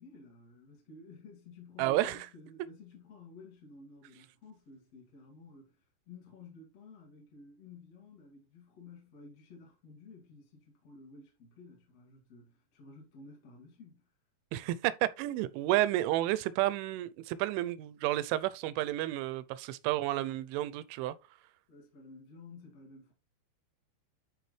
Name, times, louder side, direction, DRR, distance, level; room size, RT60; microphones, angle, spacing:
voice 1, 0.0-14.1 21.7-23.1, left 3 dB, 45° left, 2.5 m, -53 dB
voice 2, 1.8-2.3 14.5-21.2, right 15 dB, 85° right, 3.0 m, -31 dB
12.0 x 4.8 x 3.2 m
omnidirectional pair, 5.4 m